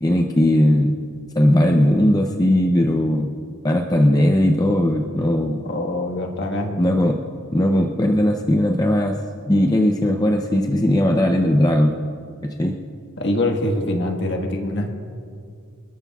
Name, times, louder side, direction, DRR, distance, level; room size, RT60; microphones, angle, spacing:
voice 1, 0.0-0.9 1.4-3.3 3.6-5.6 6.8-7.2 7.5-9.2 9.5-12.0 12.4-12.8, left 1 dB, 15° left, 2 dB, 0.6 m, -18 dB
voice 2, 5.5-6.8 13.2-14.9, left 1 dB, 55° left, 3 dB, 1.6 m, -24 dB
28.5 x 13.0 x 2.4 m, 2.3 s
head